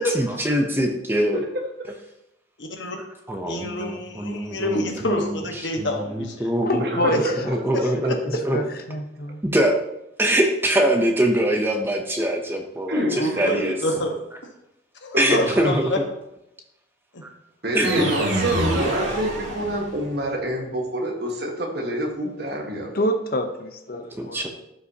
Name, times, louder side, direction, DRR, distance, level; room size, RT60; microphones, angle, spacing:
voice 1, 0.0-1.4 3.3-3.6 3.9-5.1 5.8-5.9 6.1-6.9 7.5-8.1 8.4-8.6 9.4-9.8 10.2-13.8 15.2-15.9 17.2-17.3 17.7-18.1 24.2-24.5, right 1 dB, 10° right, 3 dB, 0.6 m, -23 dB
voice 2, 1.1-1.5 6.8-7.3 12.9-13.6 15.1-15.6 17.6-23.0, right 1 dB, 55° right, 1 dB, 1.5 m, -27 dB
voice 3, 2.6-3.0 3.5-6.5 7.1-7.2 8.1-8.4 13.0-14.2 15.0-16.0 17.1-17.2, left 1 dB, 70° left, 3 dB, 1.3 m, -27 dB
voice 4, 6.6-9.4 22.2-22.4 22.9-24.5, left 1 dB, 50° left, 6 dB, 0.8 m, -28 dB
sound 1, 17.8-20.2, right 1 dB, 90° right, 2.3 m, -25 dB
12.0 x 5.5 x 2.8 m, 0.88 s
head